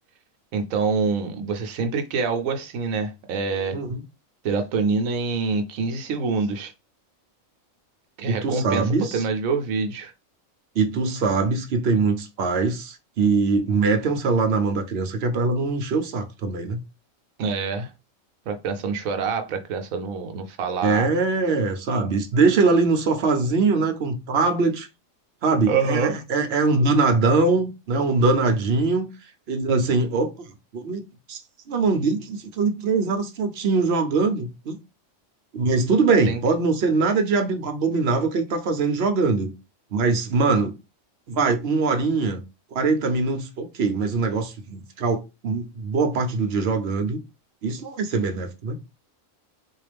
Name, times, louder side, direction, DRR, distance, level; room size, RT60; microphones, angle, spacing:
voice 1, 0.5-3.8 4.4-6.7 8.2-10.1 17.4-17.9 18.5-21.1 25.7-26.2 36.3-36.4, right 4 dB, 85° right, 1.0 m, -26 dB
voice 2, 8.3-9.2 10.8-16.8 20.8-24.9 25.4-29.1 29.5-30.3 30.7-31.0 31.3-31.4 31.7-34.8 35.5-39.5 39.9-40.7 41.3-42.4 42.7-47.2 47.6-48.8, right 4 dB, 55° right, 0.8 m, -22 dB
3.9 x 2.4 x 3.3 m
omnidirectional pair, 1.4 m